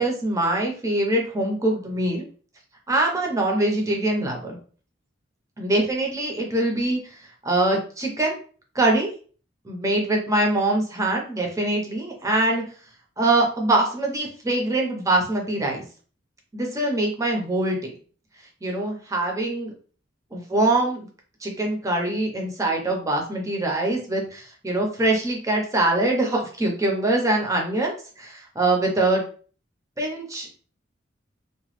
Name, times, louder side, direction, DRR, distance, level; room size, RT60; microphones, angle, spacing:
voice 1, 0.0-2.2 2.9-4.6 5.6-7.0 7.4-8.4 8.7-9.1 9.6-12.6 13.2-15.8 16.5-17.9 18.6-19.7 20.3-21.1 21.4-29.2 30.0-30.6, right 2 dB, 15° right, 1 dB, 0.7 m, -23 dB
2.9 x 2.3 x 3.1 m, 0.41 s
head